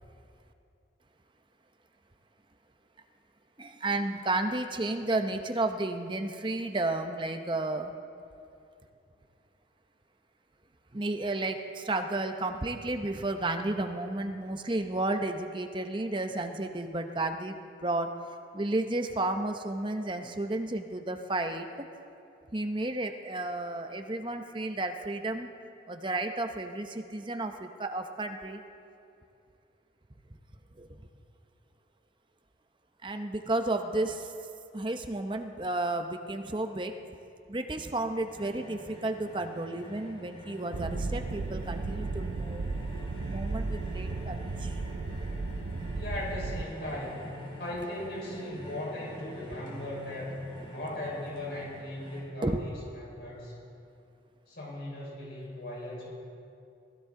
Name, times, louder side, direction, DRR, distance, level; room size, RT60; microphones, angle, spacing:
voice 1, 3.6-8.0 10.9-18.1 18.5-21.9 22.5-25.5 25.9-28.6 30.8-30.9 33.0-34.3 34.7-36.9 37.5-42.8 43.3-45.1 52.4-52.7, right 2 dB, 25° right, 6 dB, 0.7 m, -32 dB
sound 1, 38.2-52.2, equal, 30° left, 4.1 m, -47 dB
sound 2, 40.7-46.6, right 3 dB, 90° right, 0.5 m, -34 dB
voice 2, 45.9-47.3 47.6-50.4 50.7-53.5 54.5-56.1, left 1 dB, 60° left, -4 dB, 4.5 m, -38 dB
20.0 x 15.5 x 3.7 m, 2.5 s
head